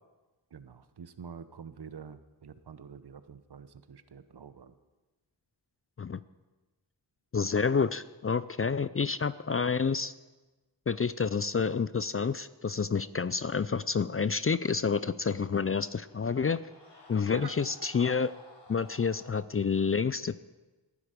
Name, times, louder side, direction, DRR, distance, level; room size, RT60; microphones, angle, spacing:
voice 1, 0.5-4.7 17.3-17.6, right 6 dB, 60° right, 13 dB, 0.9 m, -47 dB
voice 2, 7.3-10.1 10.9-16.6 17.1-18.3 18.7-20.4, left 5 dB, 30° left, 16 dB, 0.4 m, -29 dB
sound 1, 15.1-19.4, left 3 dB, 65° left, 3.4 m, -55 dB
19.0 x 9.9 x 5.1 m, 1.2 s
cardioid pair, 50°, 45 cm